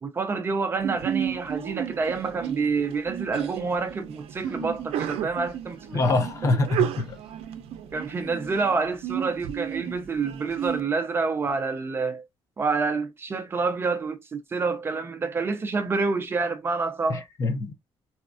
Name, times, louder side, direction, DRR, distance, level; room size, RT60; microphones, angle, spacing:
voice 1, 0.0-6.0 6.4-6.5 7.9-12.2 12.6-17.2, right 4 dB, 25° right, 0.4 m, -28 dB
Sneeze, 0.8-10.8, right 10 dB, 85° right, 0.5 m, -33 dB
sound 1, 4.4-5.0 5.8-6.5 6.9-7.3 8.1-9.3, equal, 5° right, 0.9 m, -44 dB
voice 2, 5.9-7.2 17.1-17.7, left 2 dB, 30° left, 0.5 m, -25 dB
4.1 x 2.3 x 2.4 m
cardioid pair, 180°, 10 cm